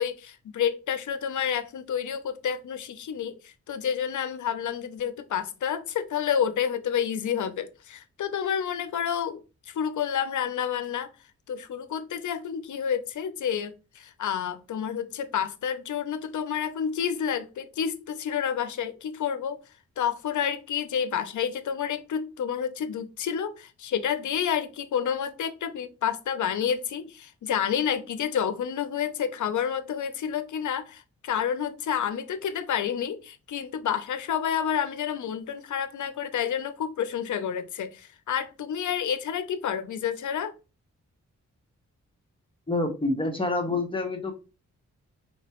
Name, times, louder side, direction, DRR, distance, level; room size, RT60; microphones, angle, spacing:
voice 1, 0.0-9.4 9.7-11.1 11.5-19.6 20.0-40.5, left 8 dB, 80° left, 0.6 m, -29 dB
voice 2, 42.7-44.3, left 2 dB, 15° left, 1.3 m, -27 dB
4.8 x 2.9 x 3.0 m
cardioid pair, 65°, 30 cm